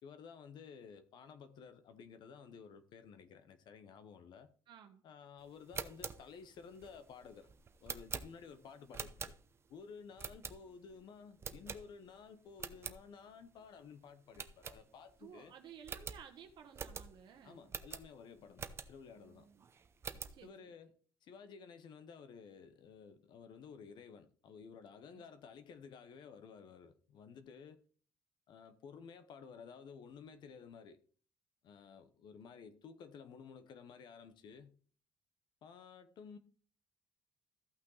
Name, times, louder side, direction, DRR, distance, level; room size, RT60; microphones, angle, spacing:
voice 1, 0.0-4.5 5.0-7.5 7.8-9.3 9.7-15.5 17.4-19.5 20.4-20.9 21.2-27.8 28.5-31.0 31.6-34.7 35.6-36.4, left 6 dB, 60° left, 0.9 m, -54 dB
voice 2, 4.7-5.0 15.2-17.7 19.2-19.6 20.3-20.7 25.1-25.3, right 8 dB, 65° right, 1.2 m, -56 dB
sound 1, 5.6-9.7 10.2-10.9 11.4-12.2 12.5-13.0 13.4-13.5 13.8-13.9 14.3-15.2 15.5-15.6 15.8-19.1 19.6-20.4, right 6 dB, 30° right, 0.8 m, -46 dB
14.5 x 5.9 x 3.9 m
cardioid pair, 145°, 8 cm